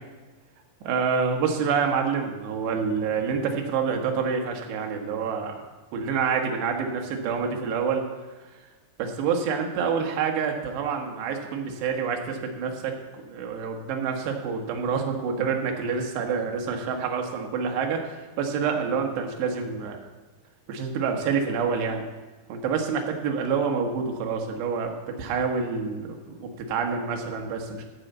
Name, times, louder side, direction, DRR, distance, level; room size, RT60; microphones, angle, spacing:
voice 1, 0.8-5.6 5.9-8.0 9.0-20.0 20.7-22.0 22.5-24.9 25.2-27.9, right 6 dB, 70° right, 2 dB, 3.2 m, -27 dB
14.5 x 4.9 x 8.0 m, 1.3 s
omnidirectional pair, 5.5 m